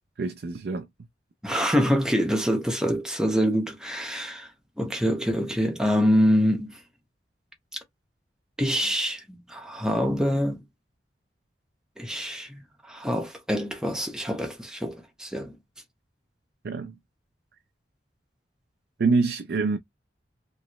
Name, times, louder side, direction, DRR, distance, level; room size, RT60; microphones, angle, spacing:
voice 1, 0.2-0.9 16.6-16.9 19.0-19.8, right 4 dB, 60° right, 0.4 m, -25 dB
voice 2, 1.4-4.5 4.8-6.8 8.6-10.6 12.0-15.5, equal, 5° right, 0.8 m, -25 dB
3.1 x 2.9 x 2.9 m
head